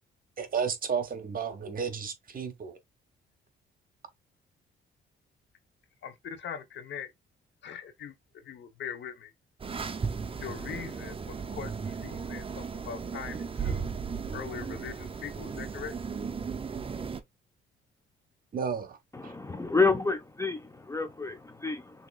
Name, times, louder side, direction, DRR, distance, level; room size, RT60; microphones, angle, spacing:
voice 1, 0.4-2.8 18.5-19.0 19.2-19.3, right 6 dB, 45° right, 1.2 m, -32 dB
voice 2, 6.0-7.1 7.6-9.3 10.4-13.9 14.3-16.0, left 8 dB, 65° left, 1.0 m, -41 dB
sound 1, 9.6-17.2, right 5 dB, 30° right, 0.6 m, -36 dB
voice 3, 19.1-22.1, left 4 dB, 15° left, 0.6 m, -29 dB
6.2 x 2.9 x 2.4 m
cardioid pair, 90°, 20 cm